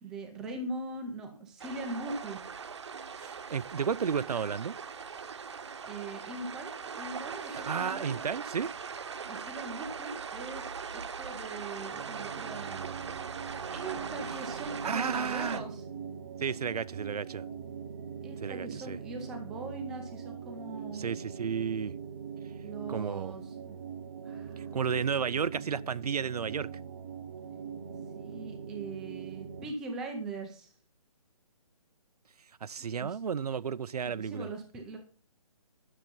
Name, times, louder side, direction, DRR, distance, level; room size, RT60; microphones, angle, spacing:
voice 1, 0.0-2.4 5.8-8.2 9.3-12.9 13.7-15.8 18.2-21.1 22.6-23.8 24.2-24.7 28.1-30.7 32.8-33.2 34.1-35.0, right 2 dB, 5° right, 0.5 m, -41 dB
sound 1, 1.6-15.6, right 6 dB, 50° right, 0.9 m, -40 dB
voice 2, 3.2-4.8 7.5-8.7 14.8-15.6 16.4-17.4 18.4-19.0 20.9-21.9 22.9-23.3 24.6-26.7 32.6-34.5, right 6 dB, 90° right, 0.6 m, -32 dB
sound 2, 11.9-29.7, right 6 dB, 20° right, 0.9 m, -42 dB
12.0 x 6.9 x 5.3 m
hypercardioid pair, 170°, 19 cm